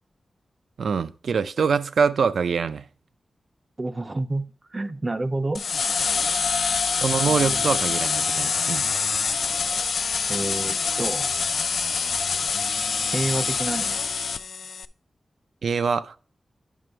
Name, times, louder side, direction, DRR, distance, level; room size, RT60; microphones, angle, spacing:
voice 1, 0.8-2.8 6.8-8.9 15.6-16.2, right 6 dB, 85° right, 0.4 m, -24 dB
voice 2, 3.8-4.5 4.7-5.7 7.3-7.7 10.3-11.3 13.1-14.0, right 2 dB, 25° right, 0.4 m, -29 dB
sound 1, 5.5-14.8, left 5 dB, 70° left, 0.3 m, -25 dB
9.1 x 6.0 x 3.3 m
wide cardioid pair, 170°, 0 cm